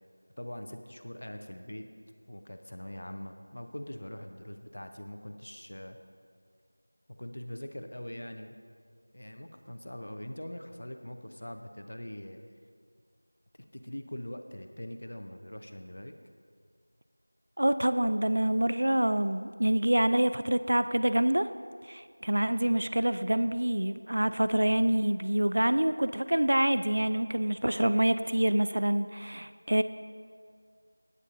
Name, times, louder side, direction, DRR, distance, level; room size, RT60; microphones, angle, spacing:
voice 1, 0.4-1.9 2.3-6.0 7.2-8.5 9.1-12.4 13.7-16.1, left 1 dB, 50° left, 6 dB, 0.8 m, -42 dB
voice 2, 17.6-21.5 21.9-29.8, right 1 dB, 50° right, 11 dB, 0.3 m, -26 dB
15.5 x 9.6 x 2.6 m, 2.1 s
figure-of-eight pair, 175°, 0 cm